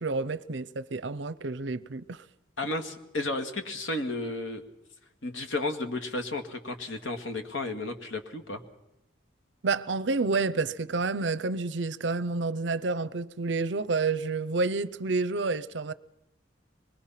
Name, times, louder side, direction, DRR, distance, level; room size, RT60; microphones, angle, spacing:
voice 1, 0.0-2.2 9.6-15.9, right 3 dB, 65° right, 0.7 m, -29 dB
voice 2, 2.6-4.6 5.2-8.6, left 2 dB, 90° left, 2.0 m, -33 dB
25.0 x 21.0 x 5.8 m
head